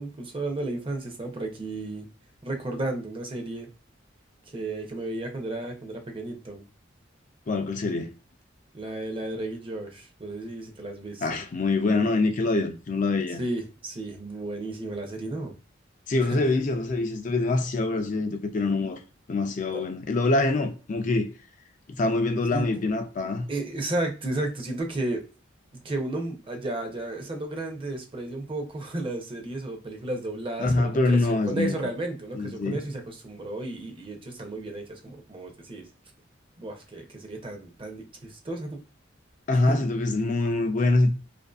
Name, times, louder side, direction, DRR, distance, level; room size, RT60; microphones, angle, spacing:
voice 1, 0.0-2.1 2.4-3.7 4.5-6.6 8.7-11.4 13.4-15.5 16.3-16.4 19.7-19.8 22.5-22.7 23.5-25.2 25.8-35.8 36.6-38.8 39.5-39.8, right 2 dB, 25° right, 0.6 m, -33 dB
voice 2, 7.5-8.1 11.2-13.4 16.1-19.0 19.3-21.3 21.9-23.5 30.6-31.8 32.3-32.8 39.5-41.1, left 2 dB, 40° left, 0.4 m, -25 dB
2.5 x 2.5 x 2.3 m
head